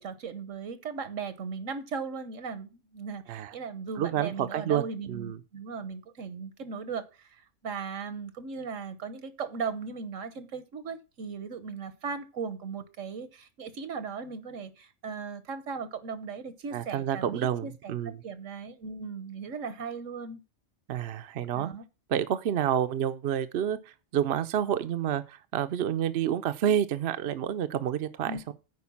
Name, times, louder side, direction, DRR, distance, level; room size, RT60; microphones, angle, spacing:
voice 1, 0.0-20.4 21.5-21.8 28.3-28.5, right 5 dB, 80° right, 1.4 m, -37 dB
voice 2, 4.0-5.4 16.7-18.2 20.9-21.7 22.1-23.8 24.1-28.5, right 10 dB, 60° right, 0.8 m, -29 dB
9.5 x 4.9 x 7.1 m
omnidirectional pair, 1.3 m